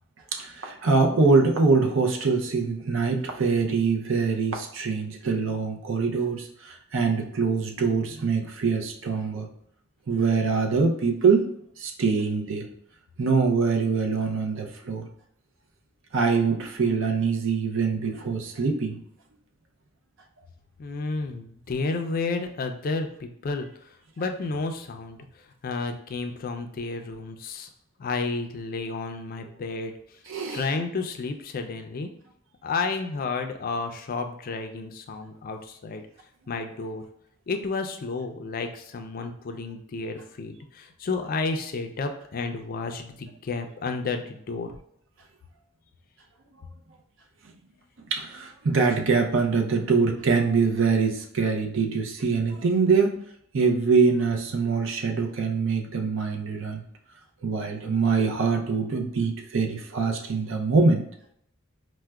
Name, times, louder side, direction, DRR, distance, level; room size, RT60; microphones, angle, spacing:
voice 1, 0.3-9.5 10.1-11.5 11.8-12.7 13.2-15.1 16.1-19.0 30.3-30.6 48.1-53.2 53.5-56.8 57.4-61.0, right 4 dB, 65° right, 3 dB, 0.5 m, -24 dB
voice 2, 20.8-23.7 24.2-25.2 25.6-27.7 28.0-29.9 30.5-32.1 32.6-36.0 36.5-37.0 37.5-44.7, left 3 dB, 45° left, 5 dB, 0.3 m, -31 dB
4.6 x 2.1 x 2.2 m, 0.72 s
head